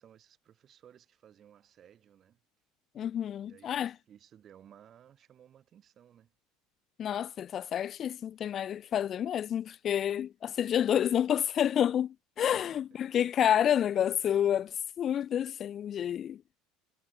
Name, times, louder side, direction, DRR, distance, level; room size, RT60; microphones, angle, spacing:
voice 1, 0.0-2.4 3.4-6.3 12.5-13.0, right 9 dB, 45° right, 4.9 m, -58 dB
voice 2, 3.0-3.9 7.0-16.4, left 9 dB, 45° left, 0.6 m, -29 dB
supercardioid pair, 90°, 0 cm